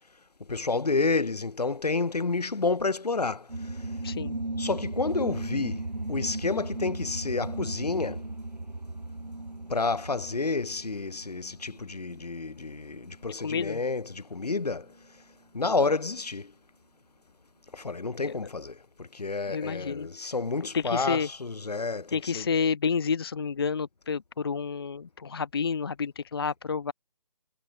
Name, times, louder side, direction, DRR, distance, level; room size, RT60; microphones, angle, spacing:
voice 1, 0.5-3.5 4.6-8.2 9.7-14.9 15.5-16.5 17.7-22.5, left 3 dB, 65° left, 3.3 m, -30 dB
sound 1, 3.5-13.4, right 2 dB, 85° right, 6.5 m, -37 dB
voice 2, 4.0-4.4 13.4-13.8 18.2-18.3 19.5-20.1 20.7-21.3 22.1-26.9, left 5 dB, 35° left, 0.5 m, -29 dB
figure-of-eight pair, 155°, 21 cm